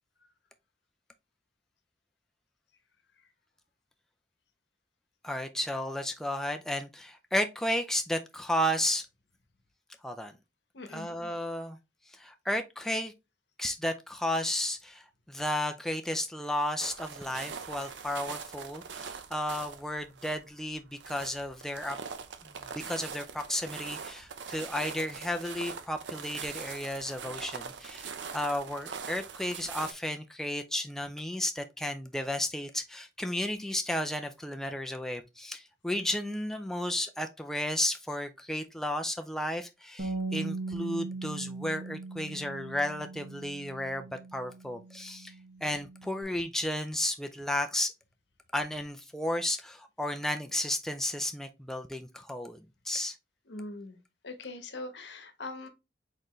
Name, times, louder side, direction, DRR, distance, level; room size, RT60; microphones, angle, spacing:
voice 1, 5.2-9.1 10.0-10.3 10.9-11.8 12.2-13.1 13.6-22.0 22.7-45.3 45.6-47.9 48.5-53.2, left 1 dB, 5° left, 0.3 m, -33 dB
voice 2, 10.7-11.1 53.5-54.0 54.2-55.7, left 2 dB, 75° left, 0.9 m, -41 dB
sound 1, 16.8-29.9, right 6 dB, 85° right, 0.6 m, -42 dB
Bass guitar, 40.0-46.2, right 3 dB, 55° right, 1.2 m, -39 dB
4.3 x 3.8 x 3.0 m
head